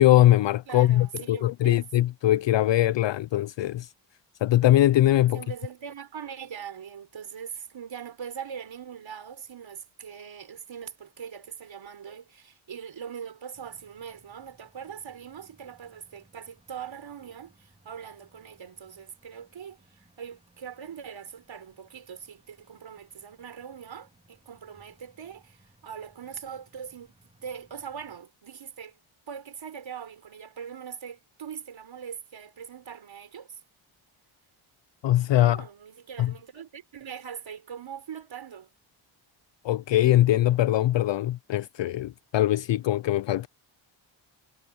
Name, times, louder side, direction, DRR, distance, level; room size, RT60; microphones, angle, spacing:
voice 1, 0.0-3.9 4.4-5.4 35.0-35.6 36.2-36.3 39.6-43.5, left 14 dB, 65° left, 0.5 m, -21 dB
voice 2, 0.7-1.9 5.3-27.1 27.4-29.0 29.3-33.6 35.3-38.7, right 7 dB, 65° right, 4.3 m, -41 dB
sound 1, 13.5-28.2, right 2 dB, 15° right, 3.6 m, -63 dB
wide cardioid pair, 105°, 48 cm